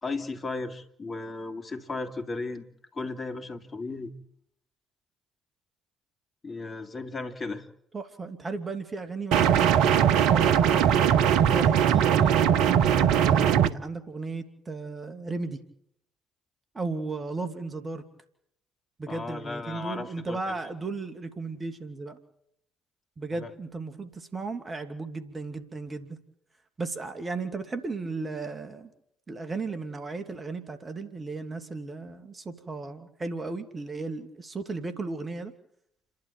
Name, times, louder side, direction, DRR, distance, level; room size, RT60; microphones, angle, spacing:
voice 1, 0.0-2.7 2.9-4.1 6.4-7.7 19.1-20.6 23.3-23.5, left 3 dB, 35° left, 4 dB, 3.3 m, -35 dB
voice 2, 7.9-10.9 11.5-15.6 16.7-18.0 19.0-22.2 23.2-26.2 26.8-28.9 29.3-35.5, right 3 dB, 30° right, 7 dB, 2.7 m, -35 dB
sound 1, 9.3-13.7, right 9 dB, 70° right, 1.0 m, -20 dB
29.5 x 12.0 x 9.0 m, 0.73 s
hypercardioid pair, 50°, 0 cm